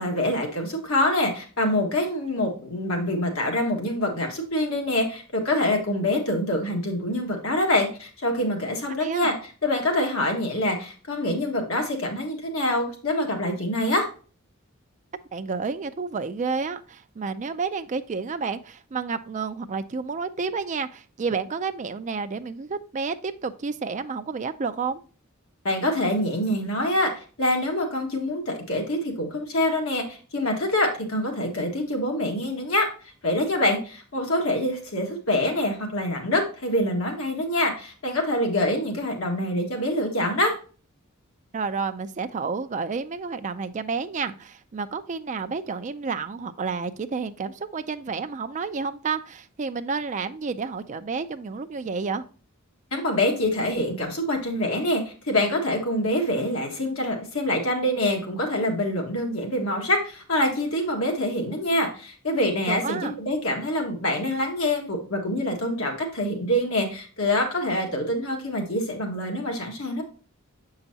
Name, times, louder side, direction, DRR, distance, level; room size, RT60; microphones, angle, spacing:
voice 1, 0.0-9.3 9.6-14.1 25.6-32.9 33.2-40.5 52.9-70.0, left 1 dB, 70° left, 2 dB, 1.6 m, -25 dB
voice 2, 9.0-9.3 15.3-25.0 41.5-52.2 62.7-63.1, right 5 dB, 35° right, 9 dB, 0.4 m, -30 dB
6.9 x 5.7 x 2.7 m, 0.38 s
head